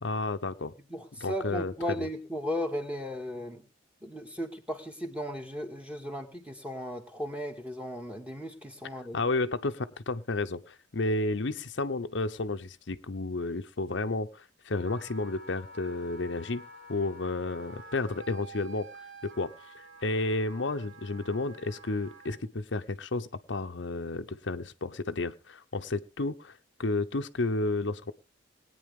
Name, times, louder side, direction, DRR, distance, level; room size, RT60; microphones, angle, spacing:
voice 1, 0.0-0.7 1.2-1.7 9.1-18.9 19.2-19.5 20.0-28.1, left 2 dB, 70° left, 8 dB, 0.8 m, -32 dB
voice 2, 0.9-3.7 4.0-9.2, equal, 5° right, 4 dB, 2.1 m, -36 dB
Wind instrument woodwind instrument, 14.7-22.4, right 2 dB, 90° right, 5.0 m, -49 dB
20.5 x 9.4 x 3.7 m, 0.35 s
head